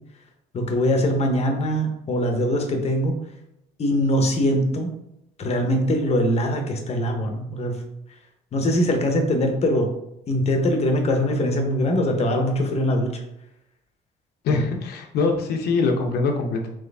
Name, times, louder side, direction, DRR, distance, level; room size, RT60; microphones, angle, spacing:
voice 1, 0.5-3.1 3.8-4.9 5.4-7.8 8.5-9.9 10.3-13.2, equal, 40° left, 3 dB, 0.9 m, -22 dB
voice 2, 14.4-16.7, left 3 dB, 75° left, 3 dB, 0.9 m, -23 dB
4.0 x 3.1 x 3.5 m, 0.83 s
cardioid pair, 110°, 17 cm